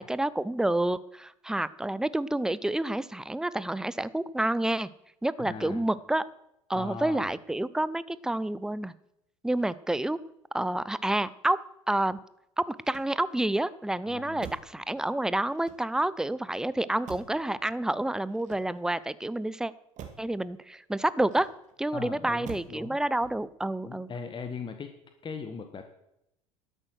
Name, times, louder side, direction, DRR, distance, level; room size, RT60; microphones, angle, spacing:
voice 1, 0.0-4.9 5.2-6.3 6.7-8.9 9.4-10.2 10.5-12.2 12.6-19.7 20.2-21.5 21.8-24.1, right 1 dB, 5° right, 18 dB, 0.6 m, -29 dB
voice 2, 5.4-5.9 6.7-7.3 14.1-14.5 21.9-23.0 23.8-24.9 25.2-25.9, left 5 dB, 30° left, 7 dB, 1.4 m, -39 dB
Motor vehicle (road), 12.8-13.5 14.4-14.8 15.5-16.2 17.1-17.5 18.3-19.1 20.0-20.3 21.2-21.8 22.4-22.8 23.2-23.6, right 8 dB, 45° right, 2.4 m, -47 dB
12.5 x 8.8 x 6.3 m, 0.83 s
hypercardioid pair, 75°, 17 cm